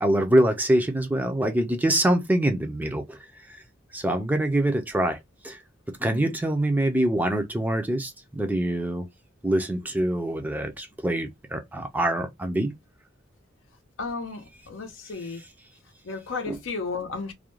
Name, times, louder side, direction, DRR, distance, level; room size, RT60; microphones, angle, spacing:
voice 1, 0.0-3.2 3.5-3.6 3.9-5.2 5.4-5.6 6.0-9.1 9.4-12.7 16.5-16.6, right 1 dB, 10° right, 0.4 m, -24 dB
voice 2, 14.0-15.4 16.1-17.3, left 4 dB, 85° left, 0.6 m, -33 dB
2.4 x 2.1 x 3.0 m
head